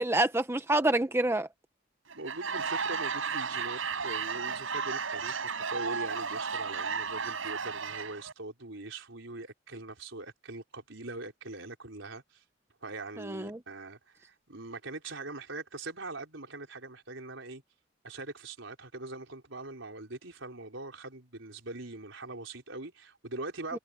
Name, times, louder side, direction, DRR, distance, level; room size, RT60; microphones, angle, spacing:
voice 1, 0.0-1.5 13.2-13.6 23.7-23.8, right 2 dB, 15° right, 0.8 m, -27 dB
Laughter / Crowd, 2.1-8.3, right 5 dB, 90° right, 6.1 m, -34 dB
voice 2, 2.2-5.4 5.7-12.4 12.8-17.6 18.0-23.8, right 2 dB, 75° right, 4.4 m, -42 dB
head